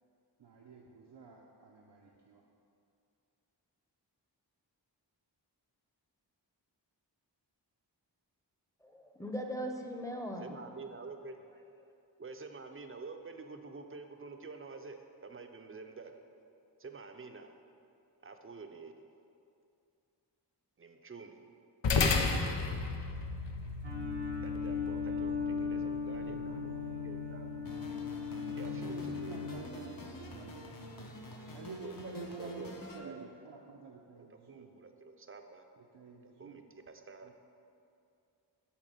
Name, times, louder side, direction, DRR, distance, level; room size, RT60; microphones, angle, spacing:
voice 1, 0.4-2.4 26.1-27.2 28.8-30.7 31.5-34.8 35.8-36.7 37.2-37.3, right 4 dB, 70° right, -1 dB, 0.7 m, -49 dB
voice 2, 8.8-10.8 11.2-11.3 11.8-11.9, equal, 5° left, 3 dB, 0.8 m, -40 dB
voice 3, 10.4-11.4 12.2-16.1 16.8-17.5 18.2-18.9 20.8-21.4 24.4-26.7 27.0-27.5 28.6-29.0 31.8-32.7 33.0-33.2 34.5-35.6 36.4-37.3, right 4 dB, 30° right, 6 dB, 0.6 m, -48 dB
sound 1, 21.8-30.5, left 4 dB, 85° left, 0.7 m, -36 dB
sound 2, 23.8-29.5, left 5 dB, 90° right, 1.5 m, -37 dB
sound 3, 27.6-33.0, left 1 dB, 50° left, 0.9 m, -47 dB
7.3 x 4.6 x 6.7 m, 2.5 s
wide cardioid pair, 80°, 43 cm